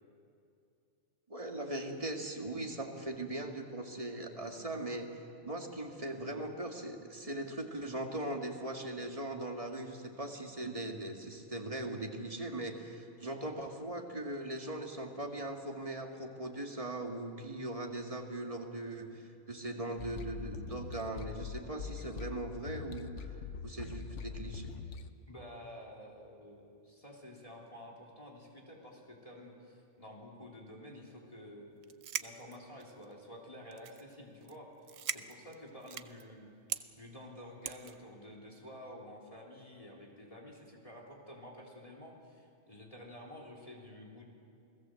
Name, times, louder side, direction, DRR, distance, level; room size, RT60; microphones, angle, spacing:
voice 1, 1.3-5.1 5.4-23.1 23.6-24.7, right 1 dB, 25° right, 2 dB, 2.2 m, -40 dB
sound 1, 20.0-25.1, left 6 dB, 65° left, 1.2 m, -43 dB
voice 2, 25.3-31.8 32.2-36.5 36.9-44.2, left 1 dB, 25° left, -1 dB, 3.4 m, -50 dB
sound 2, 31.8-33.1 33.7-34.1 34.4-34.6 34.8-36.2 36.7-36.8 37.7-38.0, right 9 dB, 70° right, 1.1 m, -39 dB
29.5 x 19.0 x 7.8 m, 2.5 s
omnidirectional pair, 1.3 m